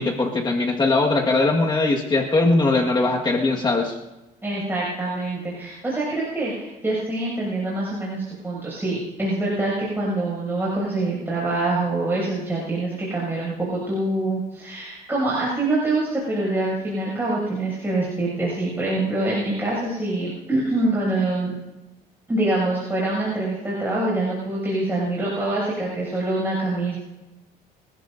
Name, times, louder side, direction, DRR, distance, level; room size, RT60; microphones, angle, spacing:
voice 1, 0.0-4.0, left 2 dB, 25° left, 0 dB, 1.7 m, -20 dB
voice 2, 4.4-21.5 22.3-27.0, right 2 dB, 15° right, -6 dB, 6.6 m, -25 dB
29.5 x 13.5 x 2.7 m, 1.0 s
cardioid pair, 110°, 17 cm